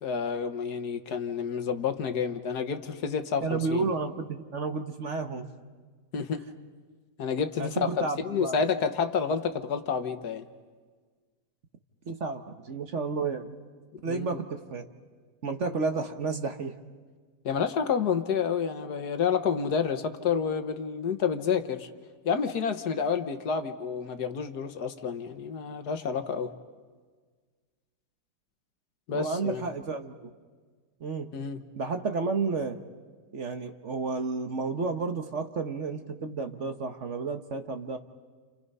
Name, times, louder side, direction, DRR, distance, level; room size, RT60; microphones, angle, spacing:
voice 1, 0.0-3.8 6.1-6.4 7.2-10.5 14.0-14.4 17.4-21.9 22.2-26.5 29.1-29.6 31.3-31.6, left 6 dB, 65° left, 8 dB, 1.6 m, -29 dB
voice 2, 3.4-5.5 7.6-8.6 12.1-13.7 14.0-14.9 15.4-16.7 29.1-30.3 31.0-31.3 31.8-32.8 33.3-38.0, right 4 dB, 45° right, 7 dB, 1.3 m, -31 dB
30.0 x 29.5 x 5.5 m, 1.5 s
omnidirectional pair, 1.9 m